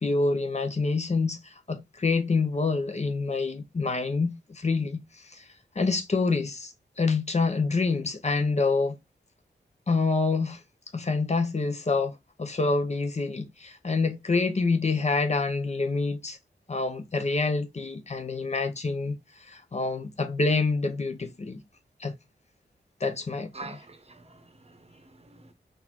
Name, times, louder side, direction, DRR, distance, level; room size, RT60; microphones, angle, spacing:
voice 1, 0.0-5.4 5.8-9.0 9.9-10.6 10.9-16.4 16.7-21.6 22.0-22.1 23.0-23.8, left 3 dB, 40° left, 0.7 m, -27 dB
voice 2, 23.5-25.5, right 3 dB, 35° right, 0.9 m, -46 dB
4.1 x 2.6 x 4.3 m
cardioid pair, 60°, 18 cm